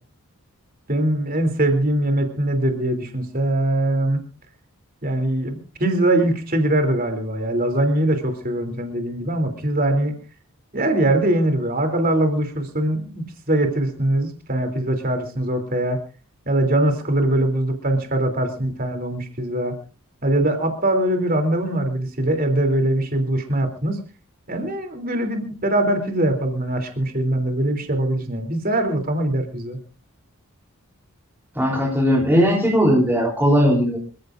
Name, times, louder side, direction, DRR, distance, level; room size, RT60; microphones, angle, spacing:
voice 1, 0.9-4.2 5.0-10.1 10.7-16.0 16.5-19.7 20.2-24.0 24.5-29.8, right 1 dB, 40° right, 6 dB, 3.2 m, -22 dB
voice 2, 31.6-34.0, equal, 10° right, -3 dB, 3.5 m, -18 dB
27.0 x 15.5 x 2.6 m, 0.35 s
head